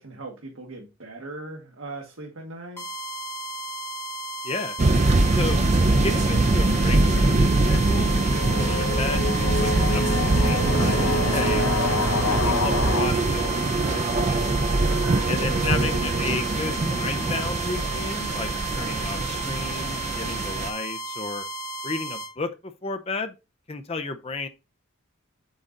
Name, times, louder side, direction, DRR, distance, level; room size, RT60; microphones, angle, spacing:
voice 1, 0.0-2.8 14.8-15.2, right 2 dB, 75° right, 1.5 m, -39 dB
sound 1, 2.8-22.3, right 1 dB, 15° left, 2.5 m, -34 dB
voice 2, 4.4-4.7 5.3-5.6 6.0-8.1 8.6-14.5 15.3-21.4 21.8-23.3 23.7-24.5, left 3 dB, 30° left, 0.7 m, -33 dB
sound 2, 4.8-20.7, right 2 dB, 35° right, 0.5 m, -23 dB
sound 3, 6.6-13.1, left 3 dB, 70° left, 0.8 m, -28 dB
8.0 x 3.9 x 3.9 m
head